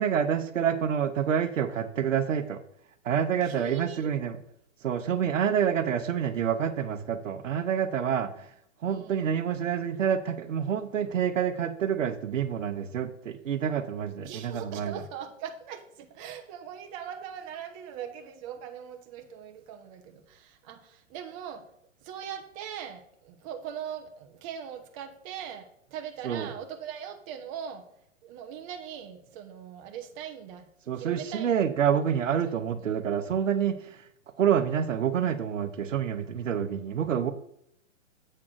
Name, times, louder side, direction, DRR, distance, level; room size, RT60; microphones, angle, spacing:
voice 1, 0.0-2.6 3.0-4.4 4.8-8.5 8.8-15.0 26.2-26.5 30.9-34.0 34.4-37.3, right 8 dB, 70° right, 10 dB, 0.9 m, -27 dB
voice 2, 3.4-4.1 5.5-5.7 8.8-9.3 14.2-21.6 22.0-27.9 28.2-30.6 31.0-31.6 31.9-32.0 32.7-32.9, right 8 dB, 25° right, 5 dB, 0.7 m, -41 dB
7.7 x 3.6 x 6.4 m, 0.72 s
hypercardioid pair, 125°, 39 cm